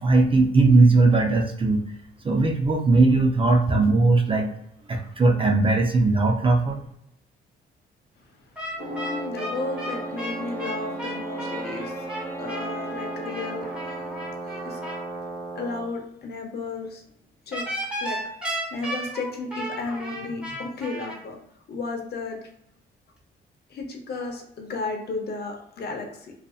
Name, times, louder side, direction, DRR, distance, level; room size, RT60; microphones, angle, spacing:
voice 1, 0.0-1.8 2.2-4.5 4.9-6.8, right 3 dB, 25° right, 2 dB, 0.4 m, -19 dB
sound 1, 8.6-15.0 17.5-21.2, equal, 5° right, 1.0 m, -34 dB
Brass instrument, 8.7-15.9, right 2 dB, 65° right, 0.8 m, -36 dB
voice 2, 8.8-12.1 12.4-13.7 14.5-14.8 15.6-17.0 17.5-17.6 18.0-18.2 18.7-21.4 21.7-22.5 23.7-26.3, left 3 dB, 55° left, 2 dB, 0.7 m, -33 dB
Wind instrument woodwind instrument, 9.5-14.3, right 2 dB, 15° left, 0.6 m, -39 dB
2.6 x 2.4 x 2.3 m, 0.75 s
cardioid pair, 90°, 20 cm